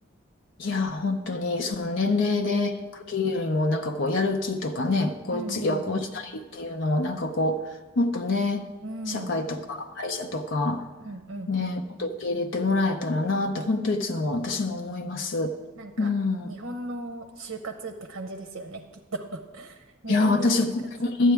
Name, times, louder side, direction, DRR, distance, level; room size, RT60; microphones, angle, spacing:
voice 1, 0.6-7.6 8.0-8.6 9.1-10.8 11.5-15.5 16.0-16.5 20.1-21.3, left 3 dB, 65° left, 5 dB, 0.6 m, -26 dB
voice 2, 2.1-2.5 5.3-6.0 8.8-9.4 11.0-11.5 14.8-15.0 15.8-16.1 16.4-18.8 19.1-20.7, right 2 dB, 75° right, 4 dB, 0.7 m, -37 dB
11.5 x 8.7 x 3.4 m, 1.2 s
head